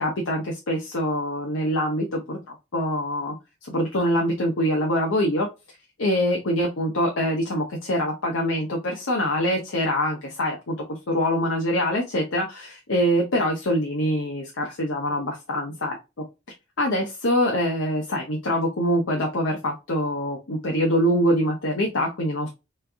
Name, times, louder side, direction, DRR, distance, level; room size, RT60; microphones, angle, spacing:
voice 1, 0.0-3.3 3.6-5.5 6.0-16.0 16.8-22.5, equal, 85° left, 0 dB, 0.8 m, -24 dB
3.4 x 3.2 x 2.5 m, 0.25 s
head